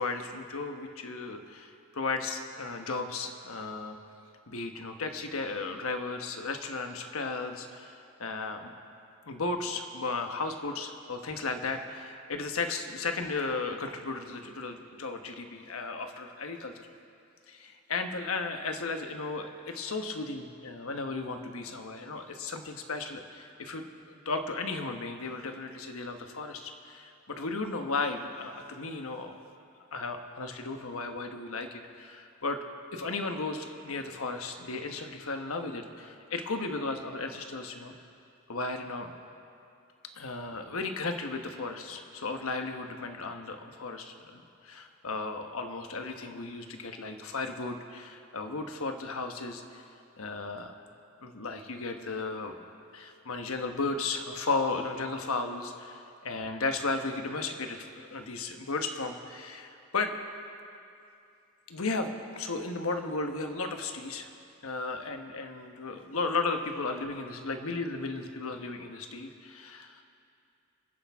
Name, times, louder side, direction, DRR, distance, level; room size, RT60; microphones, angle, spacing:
voice 1, 0.0-4.0 4.5-8.7 9.3-16.9 17.5-29.3 29.9-32.6 32.9-37.9 38.5-39.1 40.1-49.8 50.2-50.7 51.2-52.6 52.9-60.2 61.7-64.3 64.6-70.0, left 3 dB, 80° left, 5 dB, 1.1 m, -35 dB
28.0 x 10.5 x 3.6 m, 2.6 s
head